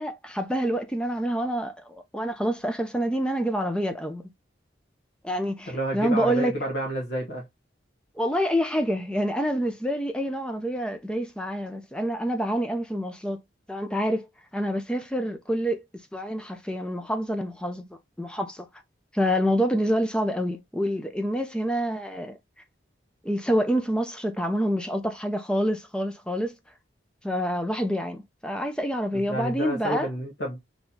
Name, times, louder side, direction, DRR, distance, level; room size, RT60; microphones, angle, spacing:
voice 1, 0.0-4.2 5.2-6.5 8.2-13.4 13.7-14.3 14.5-15.8 16.1-18.7 19.1-22.4 23.2-26.6 27.2-30.1, equal, 5° left, 0.5 m, -27 dB
voice 2, 5.7-7.4 29.1-30.6, equal, 70° left, 1.1 m, -30 dB
3.9 x 3.0 x 2.8 m
head